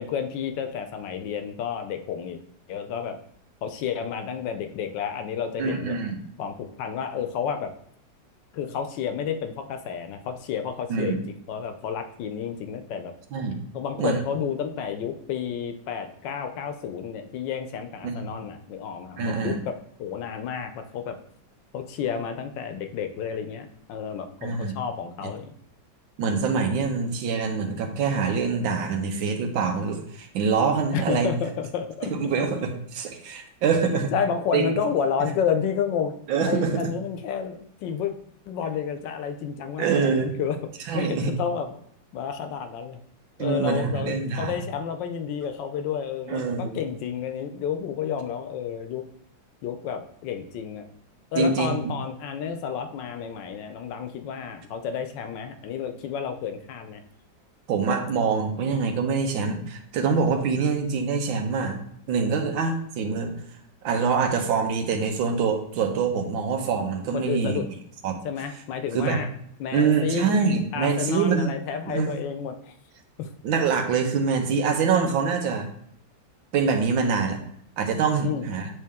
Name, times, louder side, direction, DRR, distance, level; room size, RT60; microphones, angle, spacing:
voice 1, 0.0-2.4 2.7-3.2 3.6-6.0 6.4-7.7 8.5-11.2 11.5-13.2 13.7-19.7 20.0-21.2 21.7-25.5 30.9-32.1 34.1-36.1 36.4-38.1 38.5-40.6 40.9-41.8 42.1-43.0 43.4-49.1 49.6-50.9 51.3-57.0 67.1-67.7 68.2-69.3 69.6-70.4 70.7-72.7 73.2-73.3 78.2-78.5, left 7 dB, 75° left, 7 dB, 1.2 m, -30 dB
voice 2, 5.6-6.1 10.9-11.2 13.3-13.6 14.0-14.2 18.0-18.4 19.2-19.6 24.4-24.8 26.2-31.3 32.0-34.1 34.5-34.7 35.2-35.3 36.3-36.8 39.8-40.3 40.9-41.3 43.4-44.6 46.3-46.8 51.4-51.9 57.7-61.8 62.1-63.3 63.8-67.6 68.0-68.2 68.9-69.2 69.7-71.5 71.9-72.2 73.4-75.7 76.5-77.4 77.8-78.7, right 5 dB, 90° right, 5 dB, 1.6 m, -25 dB
8.4 x 3.3 x 3.5 m, 0.68 s
omnidirectional pair, 2.1 m